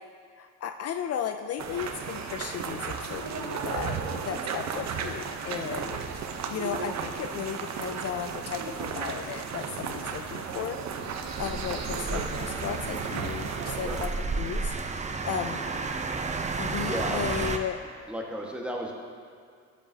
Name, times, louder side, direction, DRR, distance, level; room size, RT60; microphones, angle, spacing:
voice 1, 0.4-6.0 6.5-10.8 11.4-14.1 14.4-15.6 16.6-17.8, left 8 dB, 55° left, 7 dB, 0.4 m, -35 dB
sound 1, 1.6-14.1, right 6 dB, 60° right, 0.8 m, -34 dB
sound 2, 11.3-17.6, right 4 dB, 25° right, 0.6 m, -32 dB
voice 2, 16.8-17.2 18.1-18.9, equal, 5° right, -1 dB, 1.4 m, -34 dB
12.5 x 8.4 x 2.8 m, 2.2 s
cardioid pair, 90°, 30 cm